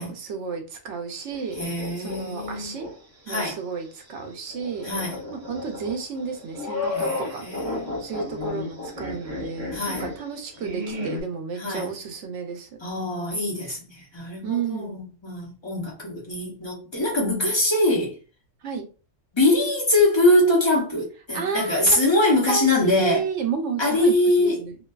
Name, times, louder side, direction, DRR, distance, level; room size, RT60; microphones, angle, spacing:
voice 1, 0.0-2.9 3.3-4.9 5.3-7.5 8.0-12.8 14.4-15.0 18.6-18.9 21.3-22.0 22.4-24.8, right 6 dB, 75° right, 0.9 m, -32 dB
sound 1, 1.3-2.9 3.3-3.4 4.5-11.2, left 2 dB, 25° right, 0.9 m, -33 dB
voice 2, 1.6-2.7 3.3-3.6 4.8-5.2 6.9-8.0 9.7-10.1 11.6-11.9 12.8-18.2 19.3-23.2 23.8-24.6, left 1 dB, 25° left, 0.8 m, -23 dB
2.5 x 2.2 x 2.2 m
omnidirectional pair, 1.3 m